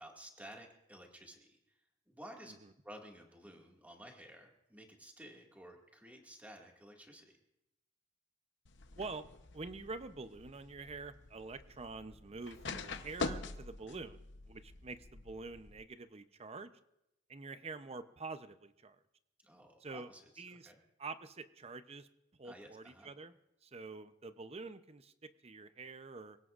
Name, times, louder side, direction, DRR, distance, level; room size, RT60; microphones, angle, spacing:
voice 1, 0.0-1.8 2.1-2.5 2.8-7.3 19.4-20.8 22.4-23.1, right 1 dB, 10° right, 1 dB, 2.0 m, -54 dB
sound 1, 8.7-15.8, left 3 dB, 65° left, 0.9 m, -45 dB
voice 2, 9.5-16.7 17.3-19.0 19.8-20.1 20.4-20.7 21.0-22.1 22.4-26.4, right 3 dB, 35° right, 11 dB, 0.7 m, -47 dB
26.5 x 17.5 x 2.5 m, 0.87 s
head